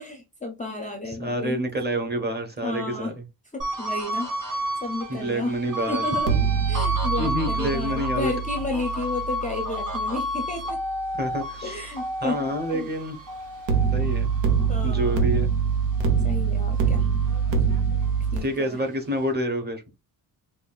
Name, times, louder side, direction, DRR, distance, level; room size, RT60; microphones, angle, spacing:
voice 1, 0.0-1.6 2.6-3.1 3.5-5.6 5.9-6.4 6.7-10.8 11.6-12.9 14.7-15.3 16.2-17.1 18.3-18.8, left 2 dB, 20° left, 0.5 m, -32 dB
voice 2, 1.2-3.1 5.1-6.0 7.2-8.3 11.2-11.8 12.2-13.2 13.9-14.3 14.8-15.5 18.4-19.8, equal, 25° right, 0.9 m, -28 dB
sound 1, 3.6-16.2 16.6-18.3, equal, 45° right, 1.6 m, -32 dB
sound 2, 6.2-11.3 13.7-18.4, right 6 dB, 85° right, 1.1 m, -25 dB
5.2 x 2.5 x 2.3 m
wide cardioid pair, 175°, 43 cm